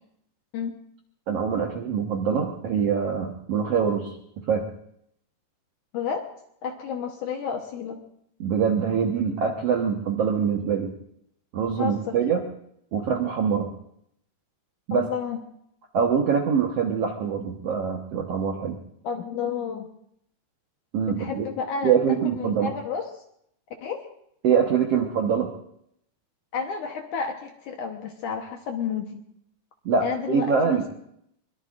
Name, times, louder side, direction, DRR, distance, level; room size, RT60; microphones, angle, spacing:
voice 1, 1.3-4.1 4.5-4.7 8.4-10.9 11.5-12.4 12.9-13.7 14.9-15.1 15.9-18.8 20.9-21.5 21.8-22.7 24.4-25.5 29.8-30.9, right 6 dB, 90° right, 3 dB, 1.3 m, -24 dB
voice 2, 5.9-6.3 6.6-8.0 11.8-12.2 14.9-15.4 19.0-19.9 21.2-22.0 22.2-23.1 23.8-24.1 26.5-29.2 30.0-30.9, left 6 dB, 70° left, 3 dB, 2.0 m, -31 dB
23.5 x 22.0 x 2.5 m, 0.72 s
omnidirectional pair, 4.8 m